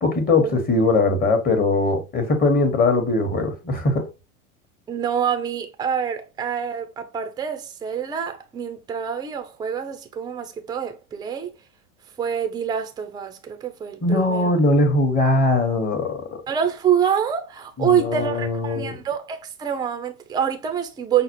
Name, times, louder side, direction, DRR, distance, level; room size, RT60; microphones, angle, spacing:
voice 1, 0.0-4.0 14.0-16.3 17.8-18.9, left 2 dB, 20° left, 1.0 m, -20 dB
voice 2, 4.9-11.5 12.2-14.5 16.5-21.2, right 8 dB, 10° right, 0.4 m, -26 dB
5.7 x 2.0 x 2.9 m
hypercardioid pair, 85°, 43 cm